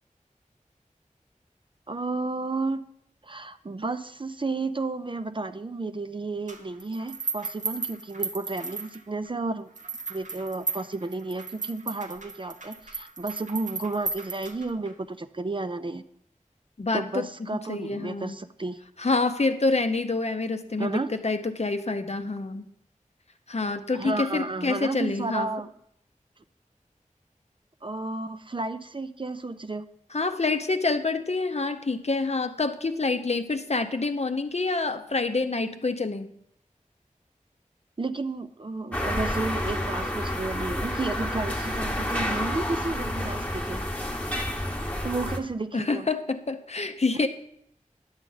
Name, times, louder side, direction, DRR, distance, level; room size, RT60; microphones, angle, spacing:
voice 1, 1.9-2.8 3.2-9.7 10.1-16.0 16.9-18.8 20.8-21.1 23.9-25.7 27.8-29.9 38.0-43.8 45.0-46.1, right 3 dB, 40° right, 11 dB, 0.4 m, -32 dB
sound 1, 6.5-9.3 9.8-14.9, right 3 dB, 65° right, 1.0 m, -35 dB
voice 2, 16.8-17.3 17.7-18.4 19.0-22.7 23.5-25.5 30.1-36.3 45.7-47.3, left 3 dB, 55° left, 8 dB, 0.6 m, -27 dB
sound 2, 38.9-45.4, left 1 dB, 10° left, 1.0 m, -29 dB
10.5 x 7.1 x 3.9 m, 0.74 s
wide cardioid pair, 50°, 14 cm